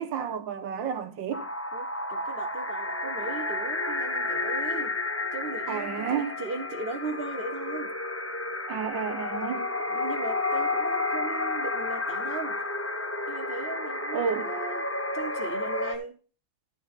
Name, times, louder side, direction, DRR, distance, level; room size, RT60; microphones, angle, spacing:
voice 1, 0.0-1.5 5.7-6.4 8.7-9.7 14.1-14.5, right 7 dB, 85° right, 1.9 m, -31 dB
sound 1, 1.3-15.9, left 2 dB, 20° left, 0.3 m, -31 dB
voice 2, 1.7-4.9 5.3-7.9 9.9-12.6 13.3-16.2, right 3 dB, 45° right, 0.8 m, -38 dB
11.5 x 11.0 x 2.5 m
omnidirectional pair, 2.0 m